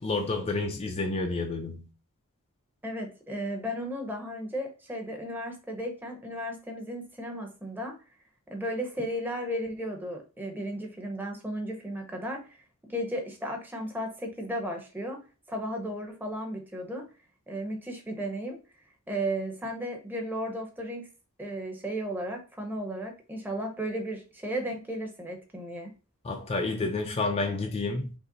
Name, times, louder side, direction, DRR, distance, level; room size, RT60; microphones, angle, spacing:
voice 1, 0.0-1.9 26.2-28.1, left 3 dB, 30° left, 0.4 m, -30 dB
voice 2, 2.8-7.9 8.5-12.4 12.8-15.2 15.5-17.0 17.5-18.6 19.1-21.1 21.4-25.9, equal, 10° right, 0.8 m, -34 dB
5.4 x 2.0 x 3.9 m
head